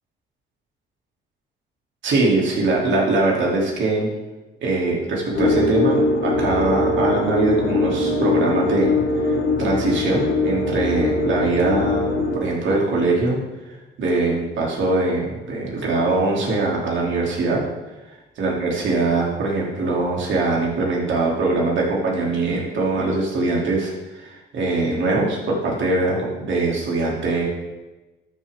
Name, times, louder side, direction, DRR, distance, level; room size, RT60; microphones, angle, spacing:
voice 1, 2.0-4.1 4.6-9.0 9.2-13.4 14.0-17.6 18.4-27.5, right 2 dB, 70° right, -2 dB, 3.0 m, -22 dB
sound 1, 5.3-12.4, left 3 dB, 80° left, 1.5 m, -22 dB
13.0 x 7.1 x 3.7 m, 1.1 s
cardioid pair, 90°, 20 cm